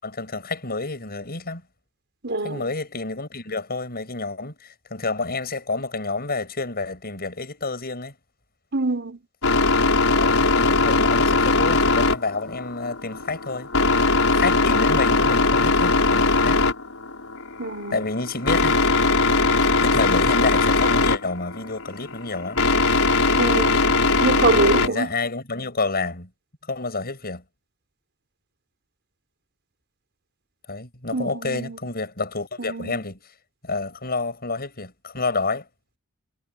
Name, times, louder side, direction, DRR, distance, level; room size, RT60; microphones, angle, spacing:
voice 1, 0.0-1.6 2.4-8.2 10.1-13.7 14.3-16.6 17.9-18.7 19.8-22.6 24.8-26.3 26.7-27.4 30.7-33.2 33.6-35.7, left 3 dB, 45° left, 7.3 m, -29 dB
voice 2, 2.2-2.7 8.7-9.2 17.6-18.0 23.4-23.9 24.2-25.1 31.1-31.8 32.6-33.0, right 2 dB, 50° right, 5.4 m, -25 dB
sound 1, 9.4-24.9, left 3 dB, 70° left, 5.8 m, -20 dB
head